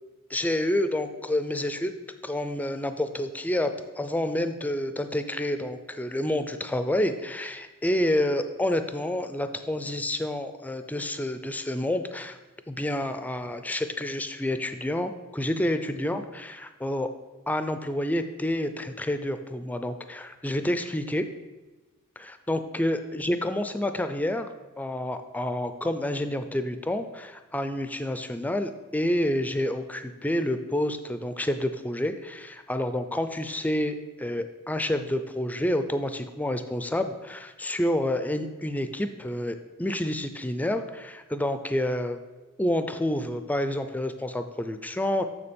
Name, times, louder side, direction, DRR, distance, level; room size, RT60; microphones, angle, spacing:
voice 1, 0.3-1.9 2.2-12.4 12.7-17.1 17.5-21.2 22.2-24.5 24.8-42.2 42.6-45.2, left 1 dB, 5° left, 9 dB, 0.4 m, -29 dB
6.9 x 6.8 x 5.2 m, 1.2 s
head